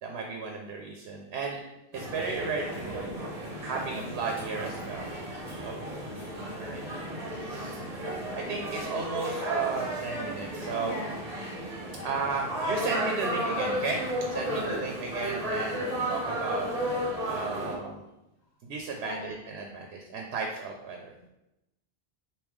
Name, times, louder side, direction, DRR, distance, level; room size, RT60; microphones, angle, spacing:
voice 1, 0.0-1.6 1.9-3.1 3.6-5.1 5.6-5.9 6.7-6.8 7.3-11.0 12.0-14.0 14.3-16.7 17.2-18.0 18.6-21.3, right 4 dB, 85° right, 1 dB, 0.8 m, -34 dB
sound 1, 1.9-17.8, right 1 dB, 40° right, 0.9 m, -34 dB
voice 2, 6.1-6.6 10.8-11.3 14.3-15.0 19.0-19.4 21.2-21.3, left 2 dB, 85° left, -1 dB, 0.9 m, -41 dB
3.5 x 2.9 x 4.6 m, 0.92 s
omnidirectional pair, 1.1 m